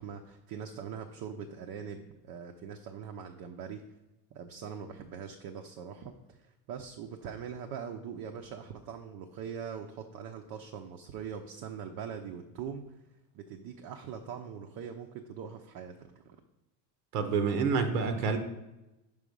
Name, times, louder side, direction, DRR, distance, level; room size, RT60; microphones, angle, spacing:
voice 1, 0.0-3.8 4.3-13.0 13.3-16.4 18.0-18.2, right 7 dB, 45° right, 4 dB, 0.7 m, -42 dB
voice 2, 17.1-18.4, right 5 dB, 85° right, 7 dB, 1.1 m, -28 dB
5.5 x 5.0 x 5.4 m, 0.98 s
supercardioid pair, 120°, 47 cm